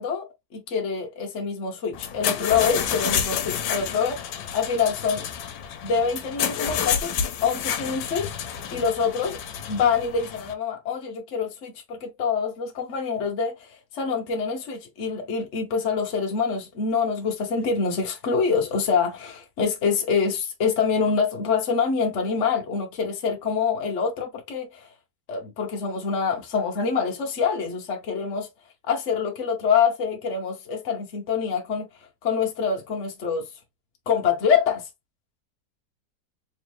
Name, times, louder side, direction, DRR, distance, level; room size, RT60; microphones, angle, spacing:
voice 1, 0.0-5.3 5.8-7.1 7.4-9.4 9.7-24.9 25.3-28.5 28.8-31.9 32.2-33.5 34.1-34.9, left 6 dB, 50° left, 0.9 m, -25 dB
sound 1, 1.9-10.5, left 8 dB, 75° left, 1.4 m, -29 dB
3.5 x 3.2 x 3.0 m
omnidirectional pair, 2.1 m